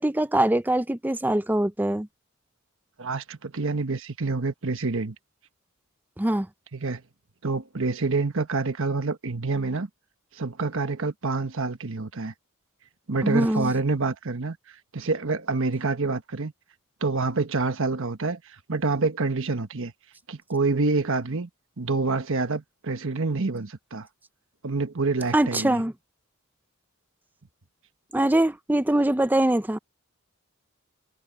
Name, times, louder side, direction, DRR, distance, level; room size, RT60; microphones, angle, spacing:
voice 1, 0.0-2.1 6.2-6.5 13.2-13.7 25.3-25.9 28.1-29.8, right 1 dB, 10° right, 0.6 m, -23 dB
voice 2, 3.0-5.1 6.7-7.0 7.4-9.9 10.3-12.3 13.1-14.6 14.9-16.5 17.0-19.9 20.3-21.5 21.8-24.1 24.6-25.8, right 3 dB, 65° right, 1.3 m, -27 dB
head